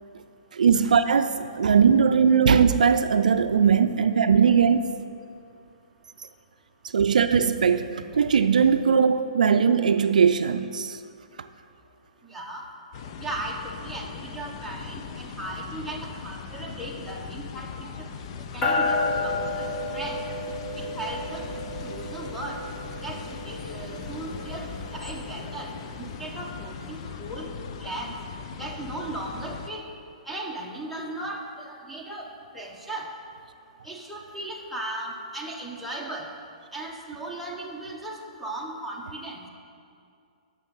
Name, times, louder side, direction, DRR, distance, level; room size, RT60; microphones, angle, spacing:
voice 1, 0.5-4.9 6.9-11.0, right 6 dB, 80° right, 10 dB, 0.4 m, -20 dB
voice 2, 12.2-12.7 13.2-17.7 18.0-20.2 20.8-21.5 21.8-22.6 23.0-27.5 27.8-28.1 28.6-29.8 30.3-32.3 32.5-33.1 33.8-36.3 36.7-39.4, right 2 dB, ahead, -2 dB, 1.1 m, -37 dB
sound 1, 12.9-29.7, left 6 dB, 45° left, 0.5 m, -39 dB
sound 2, 18.6-26.3, left 2 dB, 25° left, 1.3 m, -32 dB
8.7 x 6.4 x 5.4 m, 2.5 s
hypercardioid pair, 140°, 4 cm